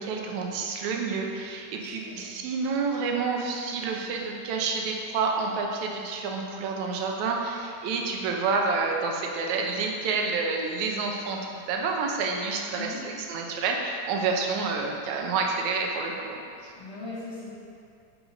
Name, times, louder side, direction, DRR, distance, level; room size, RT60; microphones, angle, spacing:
voice 1, 0.0-16.7, right 4 dB, 75° right, 1 dB, 2.2 m, -29 dB
voice 2, 1.8-2.2 12.7-13.0 16.7-17.5, left 2 dB, 45° left, -15 dB, 2.8 m, -39 dB
10.0 x 4.8 x 5.1 m, 2.4 s
omnidirectional pair, 3.5 m